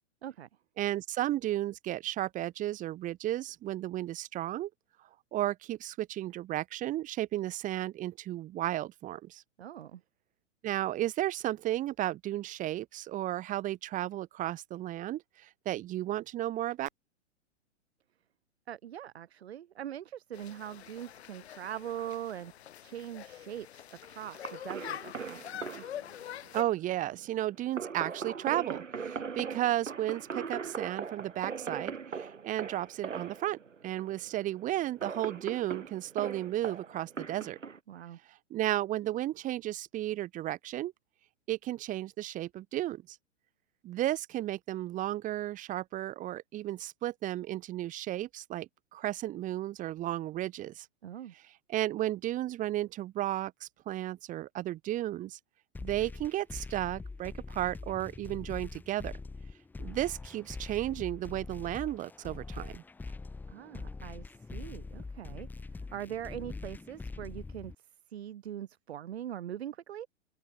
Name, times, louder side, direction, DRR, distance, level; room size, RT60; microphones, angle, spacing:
voice 1, 0.8-4.7 5.3-9.4 10.6-16.9 26.5-37.6 38.5-40.9 41.5-43.2 43.8-50.9 51.7-55.4 55.8-59.1 59.8-62.8, right 14 dB, 20° right, 1.3 m, -34 dB
voice 2, 9.6-10.0 18.7-22.5 22.8-25.9 37.9-38.2 51.0-51.3 63.5-70.1, right 11 dB, 55° right, 1.6 m, -42 dB
sound 1, 20.3-26.6, left 11 dB, 60° left, 0.7 m, -45 dB
sound 2, 24.3-37.8, right 5 dB, 80° right, 2.0 m, -41 dB
sound 3, 55.7-67.7, left 3 dB, 5° left, 0.9 m, -43 dB
open air
figure-of-eight pair, 110°, 37 cm